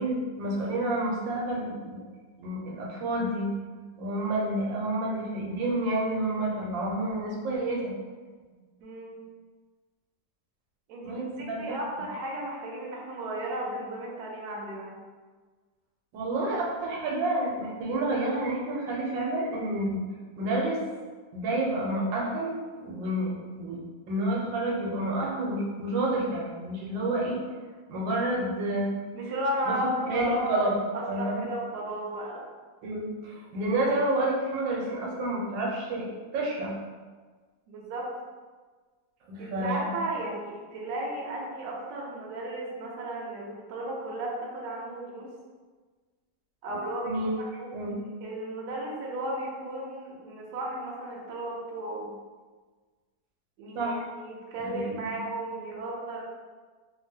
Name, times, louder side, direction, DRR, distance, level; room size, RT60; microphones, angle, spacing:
voice 1, 0.0-2.0 2.4-3.5 3.9-7.9 11.0-11.7 16.1-20.0 20.4-20.8 21.3-23.8 24.1-27.4 27.9-28.9 30.1-30.7 31.1-31.4 32.8-36.1 36.3-36.7 39.3-39.9 47.1-47.3 47.7-48.0 53.7-54.0 54.6-55.0, right 1 dB, 85° right, -3 dB, 1.4 m, -29 dB
voice 2, 8.5-9.2 10.9-15.0 29.1-30.7 30.9-32.5 37.7-38.1 39.4-45.3 46.6-47.7 48.2-52.1 53.6-56.2, right 1 dB, 70° right, -3 dB, 1.1 m, -34 dB
3.5 x 2.3 x 2.6 m, 1.4 s
omnidirectional pair, 2.0 m